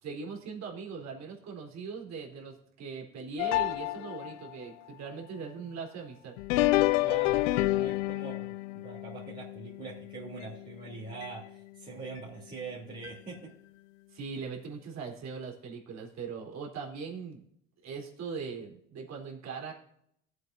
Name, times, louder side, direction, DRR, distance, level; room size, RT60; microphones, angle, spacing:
voice 1, 0.0-6.3 14.1-17.4 17.8-19.7, right 5 dB, 45° right, 0 dB, 3.8 m, -40 dB
sound 1, 3.4-4.5 6.4-10.8 11.2-11.3 12.2-12.3 13.0-13.1, left 18 dB, 80° left, 0.5 m, -29 dB
voice 2, 7.0-8.5 8.8-13.5, right 4 dB, 25° right, -6 dB, 3.3 m, -43 dB
18.5 x 8.3 x 2.7 m, 0.73 s
hypercardioid pair, 80°, 37 cm